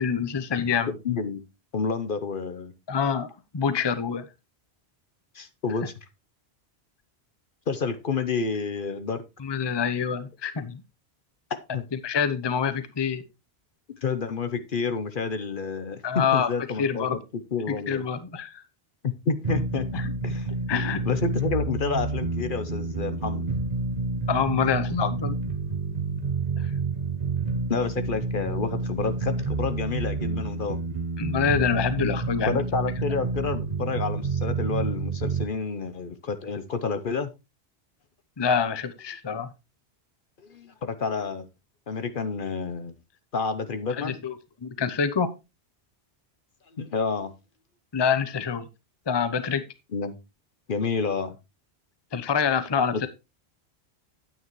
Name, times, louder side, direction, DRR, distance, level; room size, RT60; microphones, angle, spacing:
voice 1, 0.0-0.9 2.9-4.2 9.4-10.8 11.9-13.2 16.0-16.5 16.8-17.2 17.7-18.6 19.9-20.1 20.7-21.0 24.3-25.4 26.6-26.7 31.2-32.6 38.4-39.5 43.9-44.3 44.6-45.3 47.9-48.7 49.1-49.6 52.1-53.1, left 6 dB, 25° left, 12 dB, 0.7 m, -26 dB
voice 2, 0.9-1.4 1.7-2.7 5.3-5.9 7.7-9.2 11.5-11.8 14.0-17.1 17.5-18.0 19.0-19.9 20.2-20.5 21.0-23.5 27.7-30.8 32.5-37.3 40.5-41.5 41.9-42.9 43.3-44.2 46.8-47.3 49.9-50.2 50.7-51.4, left 5 dB, 55° left, 10 dB, 0.9 m, -29 dB
sound 1, 19.4-35.4, right 3 dB, 40° right, 1.0 m, -29 dB
9.3 x 9.0 x 3.1 m, 0.25 s
omnidirectional pair, 1.1 m